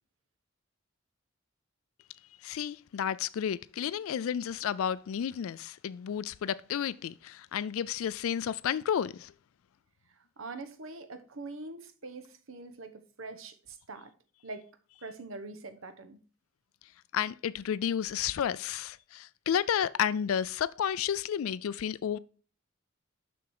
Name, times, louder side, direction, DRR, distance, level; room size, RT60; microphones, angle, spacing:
voice 1, 2.4-9.3 17.1-22.2, left 8 dB, 80° left, 0.3 m, -31 dB
voice 2, 10.2-14.1 14.4-14.7 15.0-16.2, right 3 dB, 70° right, 1.0 m, -44 dB
6.8 x 6.2 x 4.7 m
head